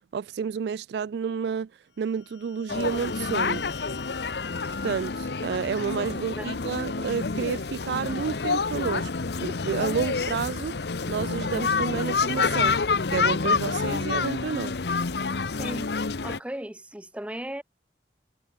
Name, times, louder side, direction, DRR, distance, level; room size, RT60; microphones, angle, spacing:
voice 1, 0.1-1.7 2.0-3.6 4.8-9.1 9.4-10.7 11.1-12.8 13.1-14.8, right 6 dB, 70° right, 0.3 m, -30 dB
sound 1, 2.0-6.5, left 6 dB, 85° left, 5.7 m, -44 dB
sound 2, 2.7-16.4, left 4 dB, 65° left, 0.8 m, -28 dB
voice 2, 6.1-6.5 15.6-15.9 16.2-17.6, right 1 dB, 5° right, 0.8 m, -36 dB
head